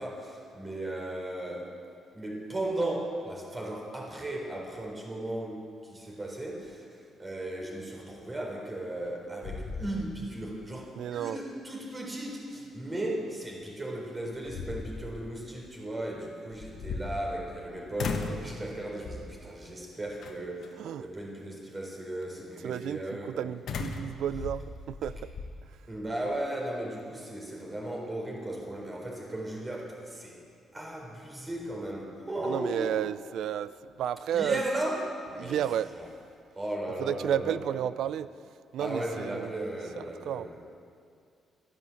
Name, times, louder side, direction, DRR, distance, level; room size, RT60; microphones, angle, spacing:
voice 1, 0.0-1.7 2.1-23.4 25.9-30.4 30.7-33.0 34.3-35.6 35.9-36.1 36.6-37.8 38.8-40.6, right 1 dB, 25° right, 0 dB, 4.2 m, -36 dB
sound 1, 8.8-9.1 9.4-10.4 10.8-10.9 13.6-13.7 14.3-15.2 16.5-17.6 18.0-18.5 19.0-19.4 20.2-20.7 23.7-25.5, left 4 dB, 65° left, 1.4 m, -37 dB
voice 2, 11.0-11.4 20.8-21.1 22.6-25.3 32.4-34.6 35.4-35.9 37.0-38.3 38.7-39.5 40.0-40.5, right 10 dB, 75° right, 16 dB, 0.4 m, -32 dB
14.0 x 10.5 x 8.5 m, 2.4 s
cardioid pair, 90°, 0 cm